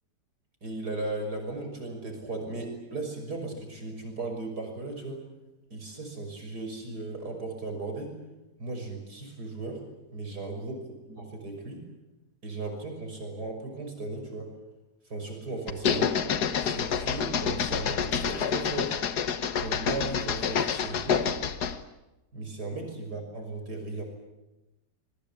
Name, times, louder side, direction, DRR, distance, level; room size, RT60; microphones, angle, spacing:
voice 1, 0.6-5.2 5.7-8.1 8.6-9.8 10.1-10.8 11.1-11.8 12.4-14.5 15.1-16.2 16.6-19.0 19.6-21.3 22.3-24.0, right 2 dB, 65° right, 3 dB, 6.6 m, -36 dB
sound 1, 15.7-21.8, left 7 dB, 65° left, 1.7 m, -28 dB
26.5 x 21.5 x 8.6 m, 0.99 s
omnidirectional pair, 1.9 m